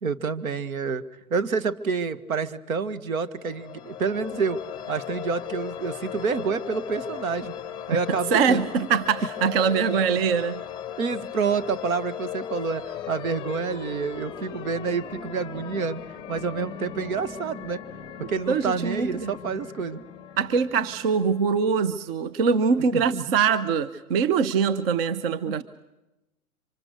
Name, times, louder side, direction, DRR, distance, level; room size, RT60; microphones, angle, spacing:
voice 1, 0.0-1.0 1.3-4.6 4.9-7.5 7.9-8.7 11.0-16.0 16.3-17.8 18.2-20.0 22.9-23.4 25.5-25.6, right 5 dB, 70° right, 12 dB, 1.6 m, -28 dB
sound 1, 3.3-21.9, left 9 dB, 10° left, 0.8 m, -38 dB
voice 2, 8.1-10.6 18.2-19.3 20.4-25.6, right 6 dB, 40° right, 14 dB, 1.0 m, -23 dB
26.5 x 25.5 x 6.5 m, 0.96 s
hypercardioid pair, 140°, 43 cm